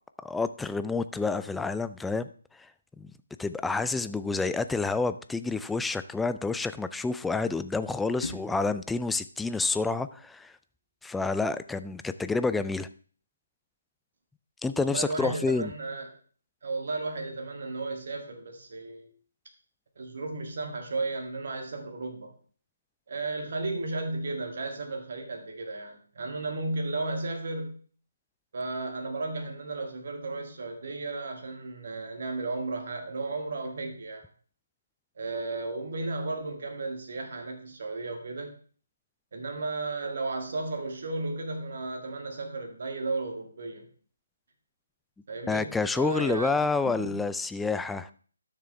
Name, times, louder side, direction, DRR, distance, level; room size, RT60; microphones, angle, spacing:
voice 1, 0.2-2.3 2.5-2.7 3.0-3.1 3.4-10.5 11.0-12.9 14.6-15.7 45.5-48.1, left 4 dB, 5° left, 12 dB, 0.3 m, -29 dB
sound 1, 11.0-11.1, left 2 dB, 55° left, 2.7 m, -45 dB
voice 2, 14.8-16.1 16.6-19.1 20.0-22.3 23.1-27.8 28.5-34.2 35.2-38.5 39.3-43.9 45.3-46.5 46.8-47.2, right 3 dB, 50° right, 3 dB, 1.8 m, -34 dB
12.0 x 6.7 x 3.4 m, 0.43 s
figure-of-eight pair, 145°, 0 cm